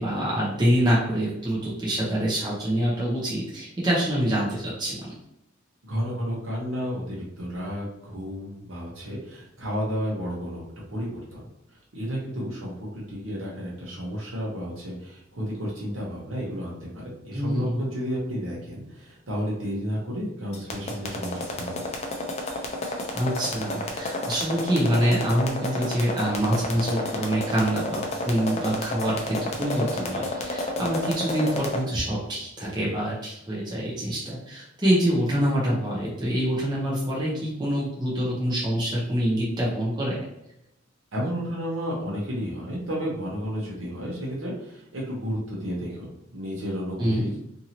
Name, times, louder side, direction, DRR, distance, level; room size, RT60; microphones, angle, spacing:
voice 1, 0.0-4.9 17.3-17.8 23.1-40.2 47.0-47.2, equal, 20° right, -6 dB, 0.7 m, -25 dB
voice 2, 5.8-10.6 10.9-11.4 11.7-21.8 41.1-47.3, equal, 75° right, -5 dB, 0.9 m, -32 dB
sound 1, 20.5-31.8, left 2 dB, 35° left, 0.5 m, -30 dB
2.7 x 2.7 x 2.8 m, 0.83 s
head